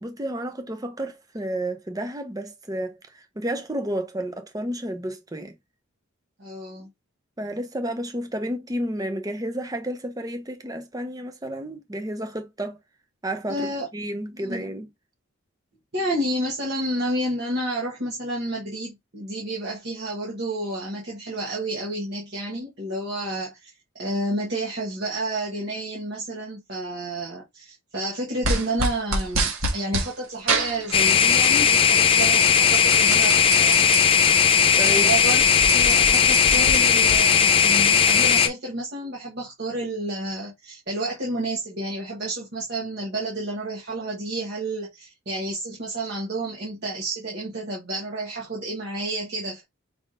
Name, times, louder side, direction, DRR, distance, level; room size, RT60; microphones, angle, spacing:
voice 1, 0.0-5.5 7.4-12.8 13.2-14.9 34.3-34.4 34.8-35.1, right 1 dB, 15° right, 0.6 m, -31 dB
voice 2, 6.4-6.9 13.5-13.9 14.4-14.6 15.9-23.7 24.0-33.9 34.9-35.4 35.7-49.6, right 1 dB, 50° right, 1.2 m, -30 dB
sound 1, 28.4-30.1 30.5-31.6 31.9-34.0 34.4-34.5 34.7-37.2, right 2 dB, 75° right, 1.6 m, -27 dB
sound 2, 30.9-38.5, left 7 dB, 25° left, 0.4 m, -17 dB
5.1 x 3.6 x 2.5 m
head